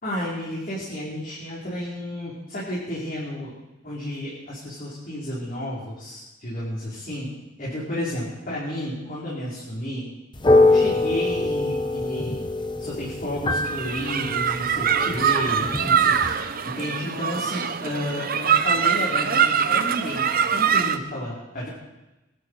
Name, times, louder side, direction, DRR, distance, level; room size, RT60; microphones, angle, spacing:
voice 1, 0.0-3.5 3.8-7.3 7.6-10.1 10.5-12.4 12.8-21.7, equal, 45° left, -7 dB, 4.9 m, -32 dB
sound 1, 10.3-16.3, left 2 dB, 25° left, 1.2 m, -23 dB
sound 2, 13.7-21.0, right 7 dB, 50° right, 0.9 m, -23 dB
21.5 x 13.0 x 4.9 m, 1.0 s
head